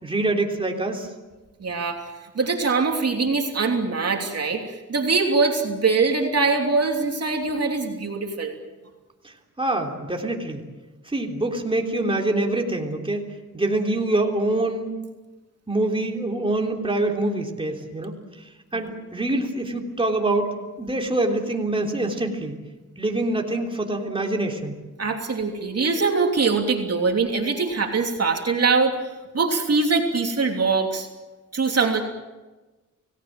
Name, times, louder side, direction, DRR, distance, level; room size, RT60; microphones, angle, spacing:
voice 1, 0.0-1.1 9.2-10.6 11.1-13.2 13.5-15.0 15.7-18.1 18.7-20.5 20.8-22.5 23.0-24.7, right 2 dB, 15° right, 1 dB, 3.4 m, -25 dB
voice 2, 1.6-2.0 2.3-4.6 4.9-8.5 18.8-18.9 25.0-29.0 29.3-31.1 31.5-32.0, right 4 dB, 50° right, 2 dB, 3.1 m, -22 dB
29.5 x 18.5 x 7.7 m, 1.2 s
cardioid pair, 95°, 33 cm